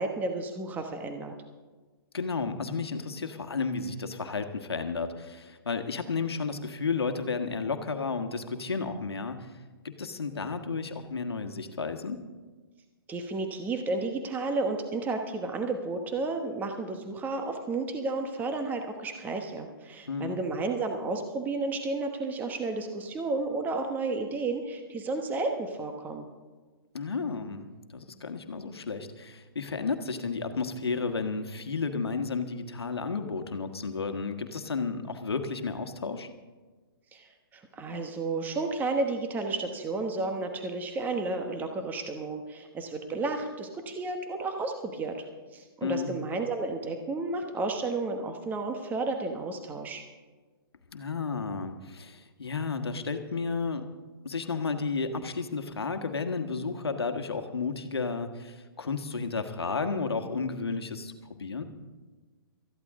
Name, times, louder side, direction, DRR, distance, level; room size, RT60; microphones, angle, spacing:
voice 1, 0.0-1.3 13.1-26.3 37.1-45.2 45.5-50.0, right 3 dB, 15° right, 5 dB, 1.2 m, -32 dB
voice 2, 2.1-9.5 9.8-12.2 20.1-20.4 26.9-36.3 45.8-46.1 50.9-53.8 54.2-61.1 61.4-61.6, left 4 dB, 85° left, 7 dB, 1.4 m, -32 dB
19.0 x 14.0 x 3.7 m, 1.4 s
hypercardioid pair, 135°, 13 cm